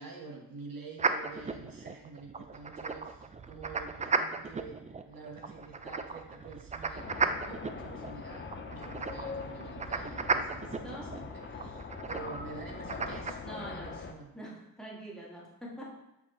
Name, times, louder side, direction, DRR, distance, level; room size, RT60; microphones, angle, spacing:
voice 1, 0.0-14.3, right 4 dB, 65° right, 0 dB, 1.2 m, -47 dB
sound 1, 1.0-13.3, right 4 dB, 20° right, 0.3 m, -36 dB
sound 2, 7.0-14.1, left 5 dB, 30° left, 0.6 m, -42 dB
voice 2, 10.8-11.2 13.4-13.9 14.3-15.9, right 1 dB, ahead, -5 dB, 1.9 m, -44 dB
6.8 x 4.8 x 3.0 m, 0.89 s
cardioid pair, 85°, 36 cm